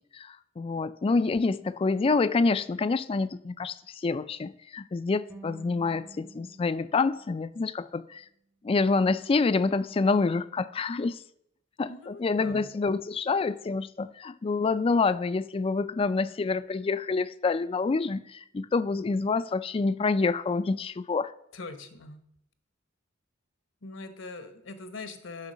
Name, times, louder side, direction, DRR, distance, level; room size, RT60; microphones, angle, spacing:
voice 1, 0.1-8.2 8.6-11.2 11.8-21.3, left 4 dB, 30° left, 0.3 m, -27 dB
sound 1, 5.3-8.4, right 2 dB, 10° right, 0.7 m, -51 dB
voice 2, 11.9-12.7 21.5-22.2 23.8-25.5, left 3 dB, 70° left, 1.1 m, -42 dB
9.7 x 5.7 x 6.2 m
head